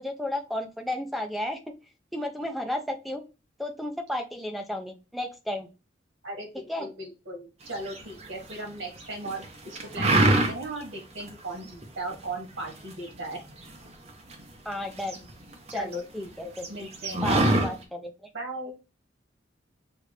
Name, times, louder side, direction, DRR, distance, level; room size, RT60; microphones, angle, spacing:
voice 1, 0.0-1.6 2.1-3.2 3.6-5.7 6.7-6.9 14.7-15.2 15.7-16.7 17.2-18.1, left 1 dB, ahead, 4 dB, 0.5 m, -33 dB
voice 2, 6.2-13.4 15.7-17.8 18.3-18.7, right 2 dB, 85° right, 1 dB, 1.7 m, -37 dB
sound 1, 7.8-8.6 9.0-9.5 9.8-10.8 11.2-11.3 11.6-12.1 12.6-14.4 14.7-15.9 16.2-16.3 16.6-17.7, right 2 dB, 35° right, 0.8 m, -24 dB
6.5 x 2.5 x 3.2 m, 0.30 s
head